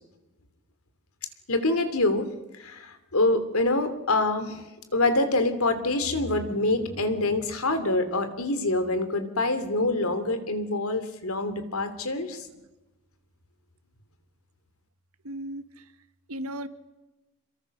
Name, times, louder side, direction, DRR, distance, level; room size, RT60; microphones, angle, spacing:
voice 1, 1.5-2.3 2.6-4.6 4.9-12.5, left 2 dB, 80° left, 9 dB, 3.0 m, -25 dB
voice 2, 15.2-15.9 16.3-16.7, right 1 dB, 80° right, 10 dB, 1.7 m, -36 dB
27.0 x 22.5 x 6.7 m, 1.1 s
head